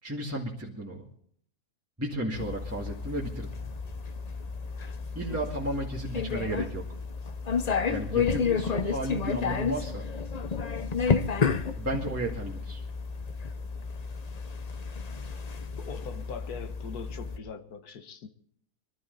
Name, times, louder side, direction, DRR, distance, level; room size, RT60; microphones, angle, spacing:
voice 1, 0.0-1.0 2.0-3.5 5.2-6.9 7.9-10.1 11.8-12.8, right 1 dB, 10° right, 2.0 m, -33 dB
sound 1, 2.4-17.4, left 5 dB, 40° left, 0.6 m, -31 dB
voice 2, 15.8-18.3, left 6 dB, 75° left, 1.7 m, -41 dB
23.5 x 12.5 x 4.0 m
omnidirectional pair, 1.7 m